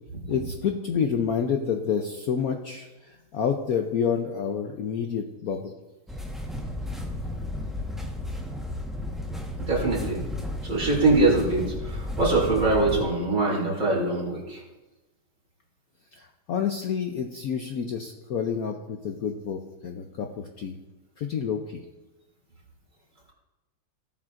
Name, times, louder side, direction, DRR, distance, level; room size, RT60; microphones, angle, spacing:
voice 1, 0.3-5.7 16.2-20.8 21.2-21.8, left 7 dB, 75° left, 4 dB, 0.8 m, -29 dB
sound 1, 6.1-13.0, left 1 dB, ahead, 0.6 m, -33 dB
voice 2, 9.6-10.2 10.6-14.6, right 2 dB, 35° right, -4 dB, 3.3 m, -23 dB
17.5 x 7.4 x 2.5 m, 1.1 s
omnidirectional pair, 2.3 m